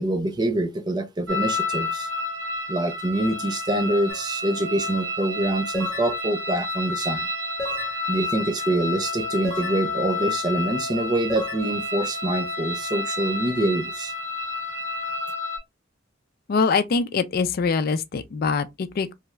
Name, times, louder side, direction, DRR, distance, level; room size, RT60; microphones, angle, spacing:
voice 1, 0.0-2.1 2.7-7.3 8.1-14.1, right 1 dB, 20° right, 0.5 m, -25 dB
sound 1, 1.3-15.6, left 2 dB, 85° right, 1.0 m, -30 dB
sound 2, 4.1-4.3 5.7-6.1 7.6-8.0 9.4-9.8 11.3-11.6, left 3 dB, 20° left, 1.1 m, -33 dB
voice 2, 16.5-19.1, left 5 dB, 55° left, 0.4 m, -23 dB
3.2 x 2.3 x 3.0 m
head